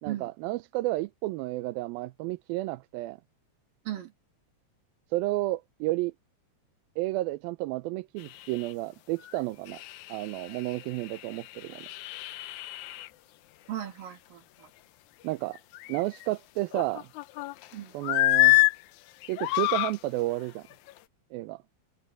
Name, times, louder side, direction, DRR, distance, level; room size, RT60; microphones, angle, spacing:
voice 1, 0.0-3.2 5.1-6.1 7.0-9.8 10.1-11.9 15.2-15.6 15.9-17.1 17.9-18.6 19.3-20.7 21.3-21.6, right 18 dB, 85° right, 2.5 m, -31 dB
sound 1, 8.3-8.7 9.2-9.4 9.7-13.1 15.5-16.3 16.7-17.7 18.0-18.8 19.2-20.0 20.7-20.9, left 22 dB, 85° left, 1.7 m, -27 dB
voice 2, 13.7-14.7 17.7-18.0, right 12 dB, 70° right, 3.8 m, -37 dB
omnidirectional pair, 4.2 m